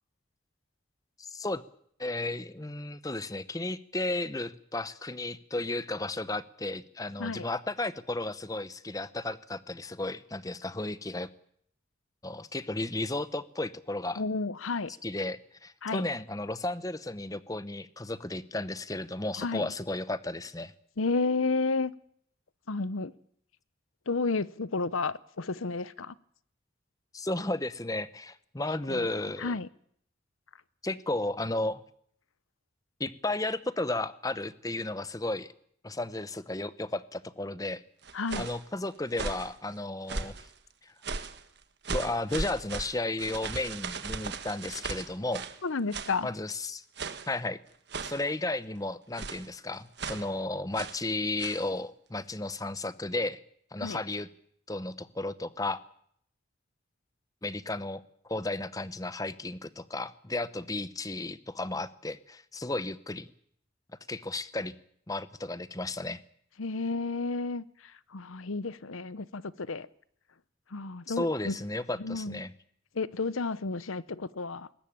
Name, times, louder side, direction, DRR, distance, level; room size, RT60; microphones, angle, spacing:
voice 1, 1.2-1.6 2.0-11.3 12.2-14.2 15.0-20.7 27.1-29.6 30.8-31.8 33.0-35.5 35.8-37.8 38.4-40.3 40.8-40.9 41.9-45.5 46.2-46.8 47.3-47.6 48.1-53.4 53.7-54.3 54.7-55.8 57.4-63.3 64.1-64.7 65.1-66.2 71.1-72.5, left 2 dB, 15° left, 0.8 m, -34 dB
voice 2, 14.2-14.9 15.8-16.1 19.4-19.7 21.0-21.9 22.7-23.1 24.1-26.1 28.9-29.1 29.4-29.7 38.1-38.5 45.6-46.3 53.8-54.0 66.6-67.6 68.1-69.9 70.7-71.5 72.0-72.4 73.0-74.7, left 3 dB, 85° left, 0.9 m, -31 dB
sound 1, 38.0-38.6 39.1-39.5 40.1-40.5 41.0-41.4 41.8-45.6 45.9-46.2 47.0-47.3 47.9-48.3 49.2-49.5 50.0-50.3 50.7-51.0 51.4-51.7, right 4 dB, 55° right, 1.6 m, -37 dB
21.5 x 19.5 x 8.8 m
head